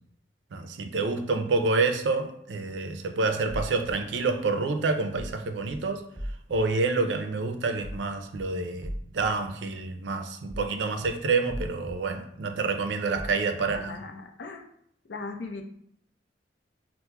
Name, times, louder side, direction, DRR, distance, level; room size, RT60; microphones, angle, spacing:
voice 1, 0.5-6.0 6.5-13.9, right 3 dB, 85° right, 0.4 m, -28 dB
sound 1, 3.5-3.9 5.2-5.4 5.7-5.8 6.2-6.6 7.8-8.0 8.3-8.4 8.8-9.3 10.5-10.7 11.0-11.1 11.5-11.9 13.2-13.4 13.7-13.8, equal, 15° left, 1.1 m, -37 dB
voice 2, 13.6-14.7 15.0-15.6, left 3 dB, 75° left, 0.5 m, -38 dB
5.7 x 2.0 x 2.2 m
head